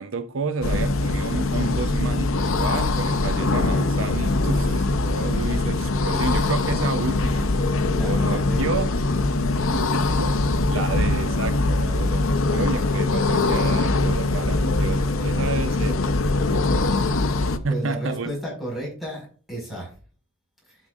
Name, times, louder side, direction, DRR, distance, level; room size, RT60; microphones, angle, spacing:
voice 1, 0.0-7.7 8.0-8.9 10.2-10.3 10.7-16.0 17.6-18.3, right 4 dB, 75° right, 0.6 m, -30 dB
sound 1, 0.6-17.6, left 2 dB, 80° left, 0.7 m, -22 dB
voice 2, 5.1-5.5 7.8-8.7 9.5-10.0 10.9-11.0 17.7-19.9, equal, ahead, 4.8 m, -33 dB
12.0 x 6.4 x 2.4 m
head